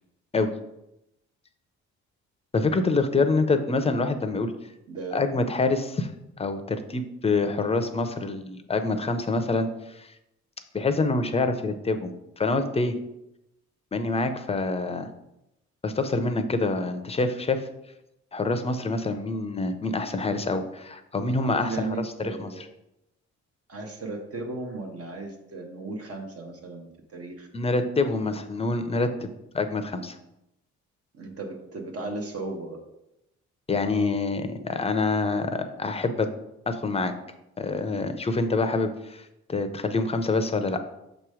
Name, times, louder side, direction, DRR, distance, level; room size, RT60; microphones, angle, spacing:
voice 1, 2.5-4.5 5.1-6.1 6.4-10.1 10.7-13.0 13.9-15.1 15.8-17.7 18.3-21.9 22.2-22.5 27.5-29.3 29.5-30.2 33.7-36.3 36.7-37.1 37.6-40.8, left 3 dB, 20° left, 8 dB, 0.6 m, -26 dB
voice 2, 4.9-5.4 21.4-22.6 23.7-27.5 31.1-32.8, right 3 dB, 50° right, 2 dB, 1.1 m, -36 dB
6.4 x 3.0 x 4.9 m, 0.88 s
cardioid pair, 90°, 30 cm